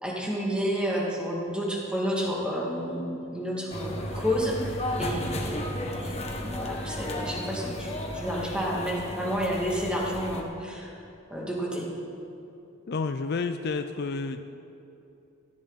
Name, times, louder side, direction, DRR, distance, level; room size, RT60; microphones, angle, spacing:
voice 1, 0.0-5.7 6.0-10.9 11.3-11.9, equal, 5° right, -3 dB, 2.3 m, -30 dB
sound 1, 3.7-10.4, left 1 dB, 30° left, 1.4 m, -34 dB
voice 2, 12.9-14.4, left 4 dB, 50° left, 9 dB, 0.5 m, -30 dB
17.0 x 14.0 x 4.1 m, 2.8 s
head